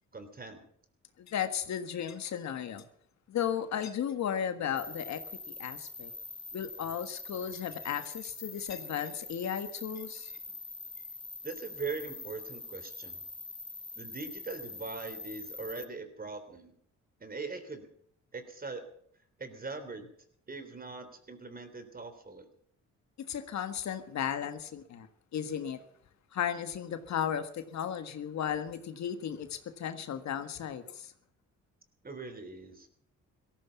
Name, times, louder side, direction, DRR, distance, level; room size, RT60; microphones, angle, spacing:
voice 1, 0.1-0.6 11.4-13.2 13.9-16.7 17.2-17.9 18.3-18.8 19.4-20.1 20.5-22.5 32.0-32.9, right 4 dB, 30° right, 9 dB, 3.4 m, -41 dB
voice 2, 1.2-2.8 3.3-5.2 5.5-6.1 6.5-10.3 23.3-25.1 25.3-25.8 26.3-31.1, left 9 dB, 65° left, 9 dB, 1.6 m, -35 dB
sound 1, 4.7-15.8, left 3 dB, 15° left, 1.1 m, -44 dB
17.0 x 14.5 x 5.8 m, 0.65 s
cardioid pair, 90°, 30 cm